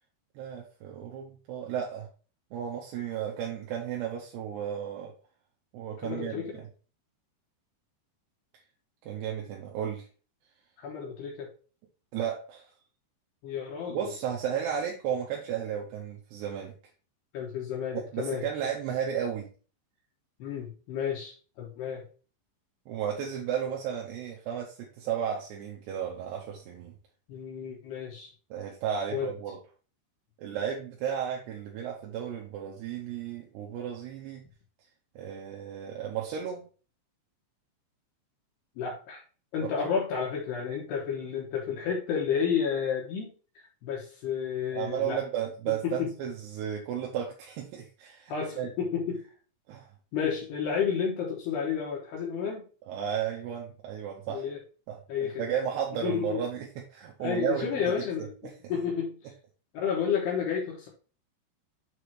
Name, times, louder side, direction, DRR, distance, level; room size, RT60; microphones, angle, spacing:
voice 1, 0.4-2.1 2.5-5.1 5.7-6.7 9.1-10.0 12.1-12.7 13.9-16.7 17.9-19.5 22.9-26.9 28.5-29.6 30.4-34.4 35.2-36.7 39.6-39.9 44.7-48.7 49.7-49.9 52.9-54.4 54.9-57.8 58.4-58.5, right 8 dB, 75° right, -1 dB, 2.7 m, -34 dB
voice 2, 6.0-6.5 10.8-11.5 13.4-14.1 17.3-18.4 20.4-22.0 27.3-28.3 29.1-29.3 38.8-39.2 39.5-43.3 43.6-45.2 45.8-46.1 48.3-49.2 50.1-52.6 54.3-54.6 55.1-55.4 56.0-56.4 57.2-58.3 58.7-59.3 59.7-60.9, left 7 dB, 70° left, -2 dB, 3.1 m, -31 dB
7.8 x 3.4 x 4.5 m, 0.38 s
omnidirectional pair, 5.4 m